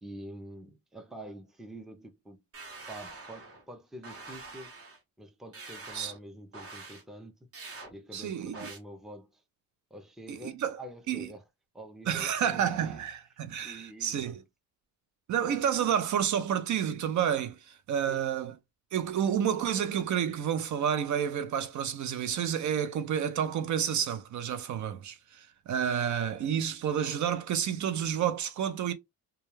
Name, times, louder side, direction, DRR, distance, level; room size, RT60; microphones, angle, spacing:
voice 1, 0.0-2.4 2.9-4.7 5.2-7.3 7.9-9.4 9.9-11.4 11.7-13.0 13.6-14.4 18.1-18.2, right 1 dB, ahead, 0.4 m, -46 dB
sound 1, 2.5-3.6 4.0-5.0 5.5-6.2 6.5-7.0 7.5-7.9 8.5-8.8, right 3 dB, 40° right, 0.9 m, -45 dB
voice 2, 8.1-8.7 10.3-10.8 11.1-11.3 12.1-14.4 15.3-18.6 18.9-28.9, right 9 dB, 60° right, 0.5 m, -30 dB
2.3 x 2.2 x 3.0 m
cardioid pair, 110°, 34 cm